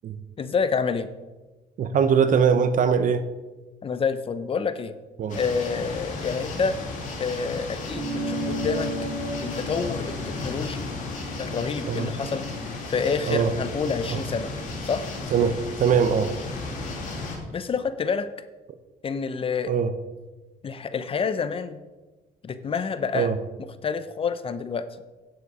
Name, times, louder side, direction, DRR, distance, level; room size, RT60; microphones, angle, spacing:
voice 1, 0.4-1.1 3.8-4.9 5.3-6.8 7.2-8.9 9.4-10.0 10.4-10.9 11.4-12.5 12.9-14.5 14.8-15.1 17.5-18.3 19.0-19.7 20.6-21.8 22.4-23.3 23.8-24.9, left 5 dB, 35° left, 12 dB, 0.6 m, -28 dB
voice 2, 1.8-3.3 5.2-5.4 11.9-12.1 13.3-13.5 14.1-14.2 15.3-16.3 19.7-19.9 23.1-23.4, right 6 dB, 50° right, 11 dB, 0.8 m, -22 dB
sound 1, 5.3-17.4, left 3 dB, 50° left, 2.5 m, -34 dB
sound 2, 7.9-12.7, equal, 70° right, 3.7 m, -34 dB
9.4 x 7.4 x 4.9 m, 1.2 s
cardioid pair, 110°, 17 cm